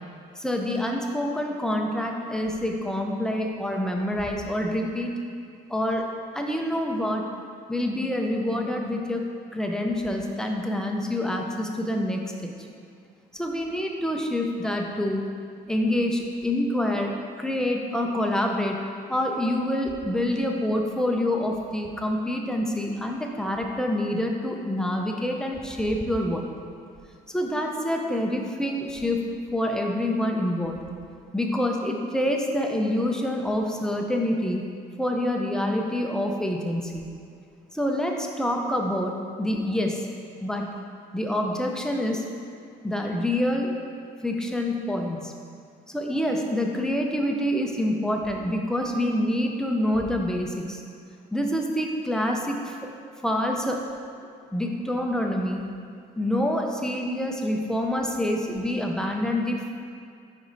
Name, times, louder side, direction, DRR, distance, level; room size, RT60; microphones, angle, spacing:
voice 1, 0.4-5.1 5.7-6.1 6.3-7.3 7.7-9.3 9.5-12.5 13.3-15.3 15.7-18.8 19.1-26.4 27.3-29.2 29.5-30.8 31.3-34.6 35.0-37.0 37.7-40.1 40.4-40.7 41.1-42.2 42.8-43.8 44.2-45.3 45.9-50.8 51.3-52.9 53.2-53.9 54.5-55.6 56.2-59.7, left 1 dB, 5° left, 1 dB, 0.6 m, -26 dB
5.2 x 4.8 x 4.0 m, 2.3 s
cardioid pair, 110°, 17 cm